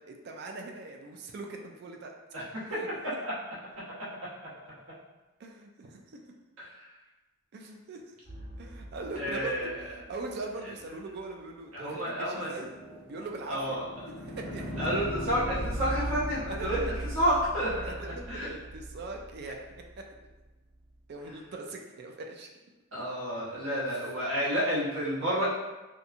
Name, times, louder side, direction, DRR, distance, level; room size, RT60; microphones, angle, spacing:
voice 1, 0.0-2.1 2.7-2.9 5.4-6.2 7.5-8.1 8.6-12.7 13.0-13.8 14.1-14.8 16.5-16.7 17.8-19.6 20.0-20.1 21.1-22.5 23.9-24.1, right 2 dB, 50° right, 2 dB, 0.3 m, -41 dB
sound 1, 8.2-10.4 12.2-20.3, equal, 20° left, 1.2 m, -39 dB
voice 2, 9.2-9.8 11.7-12.5 13.5-13.8 14.8-16.8 17.1-17.8 18.3-18.5 22.9-25.5, equal, 70° right, -8 dB, 1.0 m, -30 dB
2.8 x 2.2 x 2.5 m, 1.1 s
head